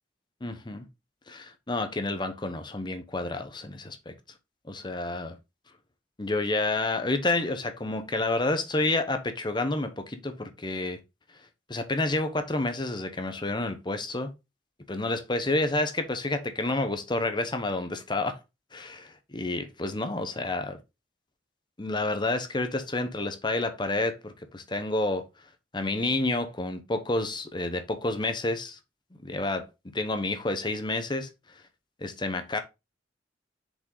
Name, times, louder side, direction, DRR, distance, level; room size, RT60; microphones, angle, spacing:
voice 1, 0.4-0.8 1.3-4.1 4.7-5.4 6.2-11.0 11.7-14.3 14.9-18.4 18.7-20.8 21.8-25.3 25.7-28.8 29.2-31.3 32.0-32.6, left 2 dB, 25° left, 0.9 m, -29 dB
6.8 x 5.2 x 3.9 m
head